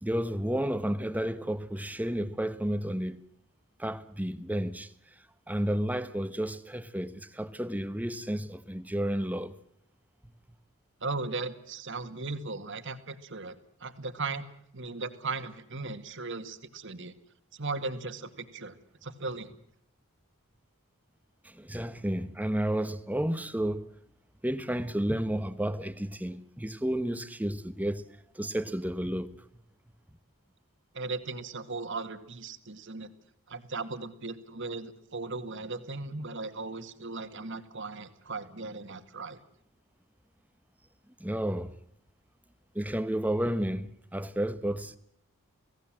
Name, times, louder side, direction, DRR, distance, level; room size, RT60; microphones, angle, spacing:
voice 1, 0.0-3.2 3.8-4.9 5.5-9.5 21.4-23.9 24.4-28.0 28.3-29.3 41.2-41.7 42.7-45.0, right 1 dB, 5° right, 1.1 m, -31 dB
voice 2, 11.0-14.5 14.7-17.2 17.5-18.8 19.0-19.5 30.9-33.1 33.5-39.4, right 3 dB, 55° right, 2.0 m, -37 dB
29.5 x 18.0 x 7.6 m
head